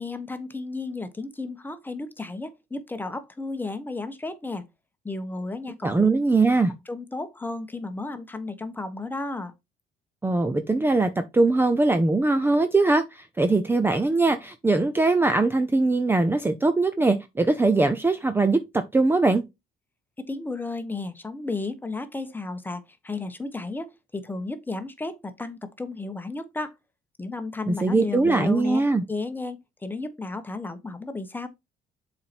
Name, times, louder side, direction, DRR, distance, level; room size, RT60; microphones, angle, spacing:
voice 1, 0.0-4.6 5.0-6.1 6.9-9.5 20.2-26.7 27.2-28.8 29.1-31.5, left 3 dB, 10° left, 1.2 m, -33 dB
voice 2, 5.8-6.7 10.2-19.4 27.7-29.0, right 3 dB, 15° right, 0.7 m, -21 dB
7.3 x 4.4 x 4.3 m
cardioid pair, 110°, 17 cm